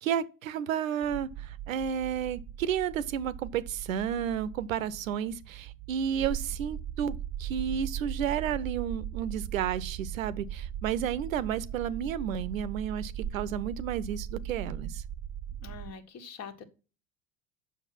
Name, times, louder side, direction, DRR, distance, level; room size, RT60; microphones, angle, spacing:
voice 1, 0.0-15.0, right 9 dB, 75° right, 0.8 m, -32 dB
sound 1, 1.0-15.9, right 10 dB, 20° right, 0.5 m, -39 dB
voice 2, 15.6-16.6, left 6 dB, 40° left, 1.5 m, -44 dB
7.3 x 6.3 x 5.8 m
figure-of-eight pair, 75°, 41 cm